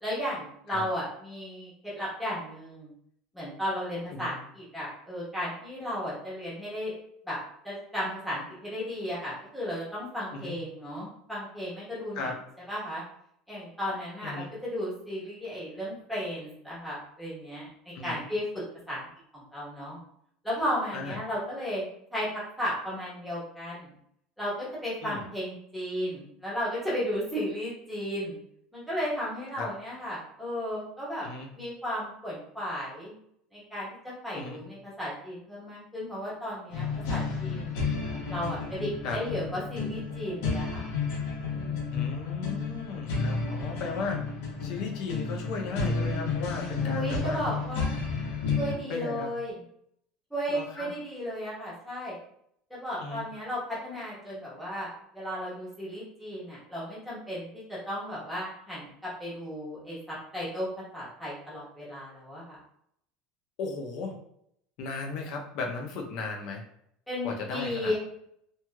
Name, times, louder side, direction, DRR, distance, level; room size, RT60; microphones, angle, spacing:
voice 1, 0.0-2.9 3.3-6.9 7.2-7.4 7.6-12.3 12.7-13.0 13.5-19.0 19.3-20.0 20.4-21.8 22.1-23.9 24.4-28.4 28.7-31.3 31.6-33.1 33.5-37.8 38.3-40.8 41.5-41.9 46.8-47.9 48.6-49.6 50.3-52.1 52.7-62.6 67.1-68.0, equal, ahead, -9 dB, 1.2 m, -34 dB
sound 1, 36.7-48.7, left 4 dB, 90° left, 0.9 m, -31 dB
voice 2, 41.9-47.4 48.9-49.3 50.5-50.9 53.0-53.3 63.6-64.1 64.8-66.6 67.2-68.0, left 4 dB, 50° left, 1 dB, 0.6 m, -36 dB
3.0 x 2.7 x 2.3 m, 0.72 s
cardioid pair, 165°, 0 cm